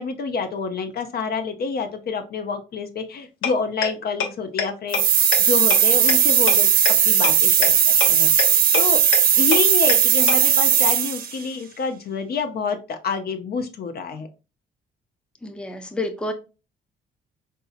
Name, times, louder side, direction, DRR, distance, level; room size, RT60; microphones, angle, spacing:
voice 1, 0.0-5.0 5.4-6.7 7.0-9.0 9.4-14.3, left 5 dB, 50° left, 7 dB, 0.5 m, -28 dB
sound 1, 3.4-3.5 3.8-3.9 4.2-4.3 4.6-4.7 4.9-5.0 5.3-5.4 5.7-5.8 6.1-6.2 6.5-6.6 6.9-7.0 7.2-7.3 7.6-7.7 8.0-8.1 8.4-8.5 8.7-8.8 9.1-9.2 9.5-9.6 9.9-10.0 10.3-10.4, left 7 dB, 80° left, 0.7 m, -22 dB
sound 2, 4.9-11.4, right 8 dB, 50° right, 0.5 m, -17 dB
voice 2, 15.4-16.3, left 2 dB, 5° left, 6 dB, 0.5 m, -29 dB
3.7 x 2.7 x 2.4 m, 0.31 s
cardioid pair, 90°, 20 cm